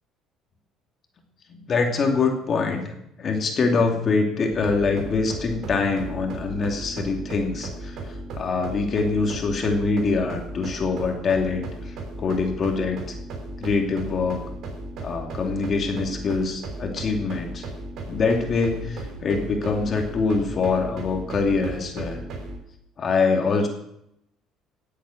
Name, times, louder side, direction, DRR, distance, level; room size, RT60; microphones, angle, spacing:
voice 1, 1.5-13.1 13.6-14.4 15.0-17.6 18.1-22.3 23.0-23.7, left 4 dB, 40° left, 3 dB, 2.5 m, -24 dB
sound 1, 4.5-22.6, right 2 dB, 60° right, 3.9 m, -36 dB
16.5 x 8.4 x 6.4 m, 0.78 s
cardioid pair, 105°, 0 cm